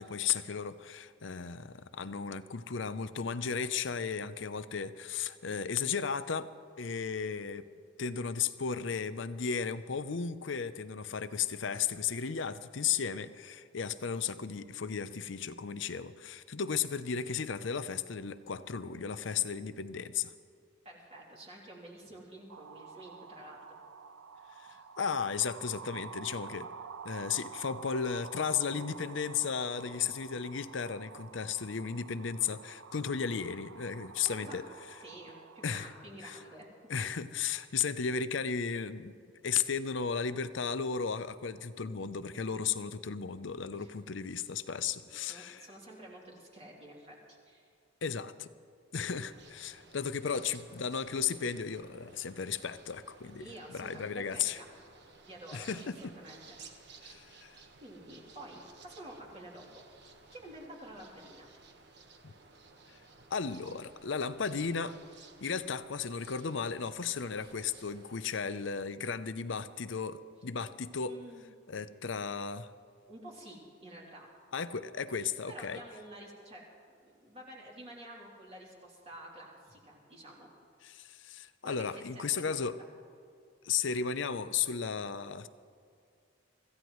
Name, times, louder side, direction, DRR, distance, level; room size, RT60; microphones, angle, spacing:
voice 1, 0.0-6.5 6.8-7.7 8.0-20.3 24.6-26.7 27.0-34.6 35.6-35.9 36.2-36.4 36.9-39.1 39.4-45.7 48.0-48.5 48.9-54.6 55.5-56.1 57.0-57.6 62.2-62.3 63.3-65.0 65.4-71.1 71.7-72.7 74.5-75.8 80.8-82.8 83.6-85.5, left 6 dB, 65° left, 13 dB, 0.6 m, -35 dB
voice 2, 20.8-23.6 24.7-24.8 34.2-34.6 35.0-36.7 43.8-43.9 45.0-47.7 50.3-50.4 53.4-54.7 55.2-55.7 56.0-57.0 57.8-59.8 60.3-61.5 71.1-71.4 73.1-74.3 75.2-80.5 81.6-82.4, right 1 dB, 30° right, -3 dB, 3.1 m, -50 dB
sound 1, 22.5-35.7, right 6 dB, 90° right, 0.5 m, -49 dB
sound 2, 49.2-68.3, right 4 dB, 55° right, 1.3 m, -57 dB
25.5 x 15.0 x 3.1 m, 2.4 s
head